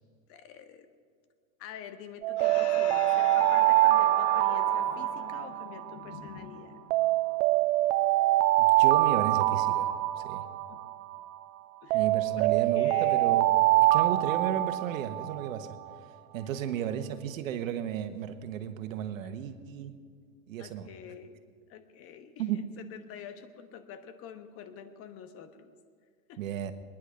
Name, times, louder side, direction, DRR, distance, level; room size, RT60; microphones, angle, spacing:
voice 1, 0.3-0.9 1.6-6.8 10.7-10.8 11.8-12.1 12.3-13.4 16.6-16.7 19.2-19.3 20.6-21.4 21.7-25.7 26.3-26.4, left 8 dB, 35° left, 9 dB, 1.2 m, -47 dB
Alarm, 2.2-6.4 6.9-11.4 11.9-15.7, right 17 dB, 45° right, 0.5 m, -25 dB
sound 1, 2.4-7.2, left 11 dB, 65° left, 1.1 m, -41 dB
voice 2, 8.6-9.9 10.2-10.4 11.9-13.6 13.9-15.7 16.3-19.9 20.5-20.9 22.4-22.6 26.4-26.7, right 9 dB, 75° right, 9 dB, 1.4 m, -34 dB
22.0 x 10.5 x 5.1 m, 2.1 s
supercardioid pair, 135°, 40 cm